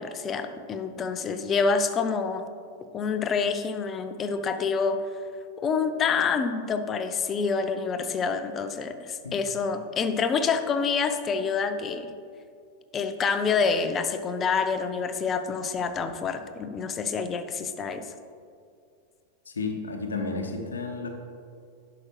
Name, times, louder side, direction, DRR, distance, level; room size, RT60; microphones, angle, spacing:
voice 1, 0.0-2.5 2.9-5.0 5.6-12.1 12.9-18.1, left 5 dB, 25° left, 9 dB, 0.5 m, -27 dB
voice 2, 19.5-21.1, left 3 dB, 70° left, 4 dB, 0.9 m, -32 dB
10.5 x 5.9 x 3.1 m, 2.3 s
figure-of-eight pair, 90°, 0 cm